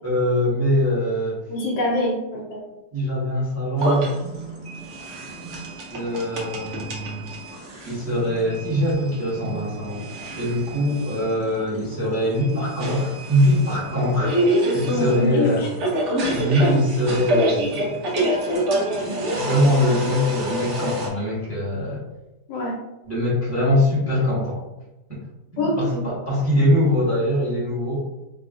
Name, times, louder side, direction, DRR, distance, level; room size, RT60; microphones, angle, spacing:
voice 1, 0.0-1.4 2.9-4.1 5.9-7.2 7.8-15.8 16.3-18.1 19.3-22.0 23.1-24.6 25.1-25.2 25.5-28.0, equal, 10° right, -8 dB, 1.0 m, -22 dB
voice 2, 1.5-2.7 15.1-15.7 22.5-22.8 25.6-26.1, left 1 dB, 75° left, -1 dB, 1.3 m, -25 dB
sound 1, 3.8-21.1, right 1 dB, 60° right, 0.8 m, -27 dB
3.4 x 2.3 x 2.5 m, 0.98 s
omnidirectional pair, 1.8 m